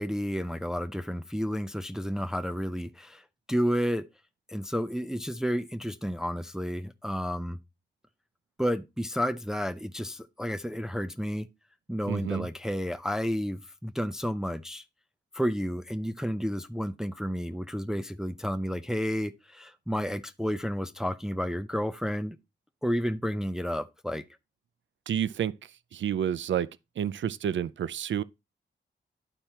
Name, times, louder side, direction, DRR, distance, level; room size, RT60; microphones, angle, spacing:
voice 1, 0.0-4.1 4.5-7.6 8.6-11.5 11.9-14.8 15.3-22.4 22.8-24.2, equal, 5° right, 0.4 m, -31 dB
voice 2, 12.1-12.5 25.1-25.5 25.9-26.7 27.0-28.2, right 9 dB, 75° right, 0.4 m, -29 dB
11.5 x 4.4 x 2.8 m
wide cardioid pair, 90°, 20 cm